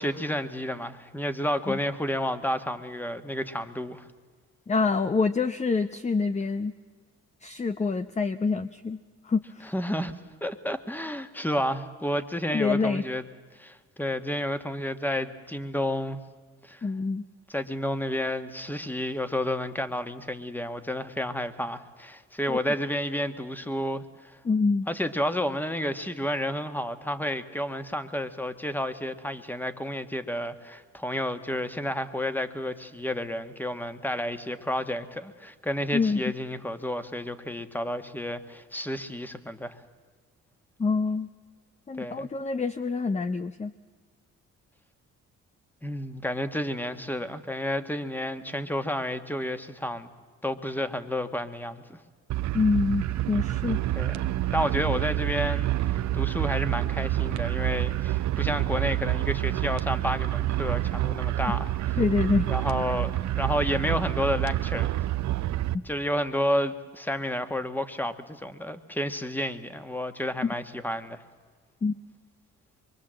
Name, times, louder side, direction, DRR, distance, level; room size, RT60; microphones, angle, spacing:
voice 1, 0.0-4.1 9.7-13.2 13.5-16.2 16.6-16.8 17.5-24.4 24.9-39.8 42.0-42.3 45.8-50.1 50.4-52.0 53.9-62.0 62.5-64.9 65.8-71.2, equal, 5° left, 9 dB, 1.6 m, -31 dB
voice 2, 4.7-6.7 7.4-9.7 12.5-13.0 16.8-17.2 22.5-22.6 24.4-24.9 35.9-36.3 40.8-41.3 41.9-43.7 52.5-53.8 62.0-62.5 65.7-65.8 70.4-70.5 71.8-71.9, left 4 dB, 20° left, 11 dB, 0.7 m, -26 dB
sound 1, 52.3-65.7, right 15 dB, 65° right, 0.8 m, -28 dB
24.5 x 23.5 x 7.6 m, 1.5 s
cardioid pair, 90°, 30 cm